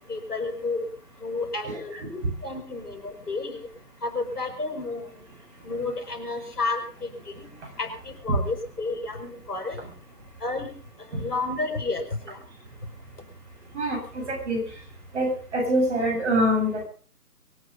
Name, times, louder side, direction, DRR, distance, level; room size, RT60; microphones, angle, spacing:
voice 1, 0.1-0.9 1.2-3.7 4.0-5.0 5.6-7.1 7.8-7.9 8.2-9.8 10.4-10.7 11.1-12.4, left 3 dB, 75° left, 6 dB, 6.0 m, -31 dB
voice 2, 1.6-2.1 8.3-8.4 13.7-14.6 15.1-16.8, equal, 45° right, 2 dB, 7.6 m, -25 dB
23.5 x 10.5 x 5.3 m, 0.39 s
figure-of-eight pair, 145°, 47 cm